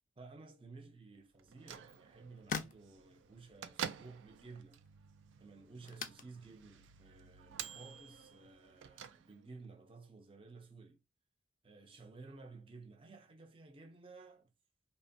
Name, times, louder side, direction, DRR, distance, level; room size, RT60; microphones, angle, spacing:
voice 1, 0.2-4.8 5.4-11.0 11.6-14.5, right 3 dB, 30° right, 0.5 m, -55 dB
Bell / Microwave oven, 1.4-9.7, right 8 dB, 90° right, 0.3 m, -49 dB
sound 1, 1.6-8.9, left 5 dB, 45° left, 0.3 m, -50 dB
2.9 x 2.1 x 2.6 m
head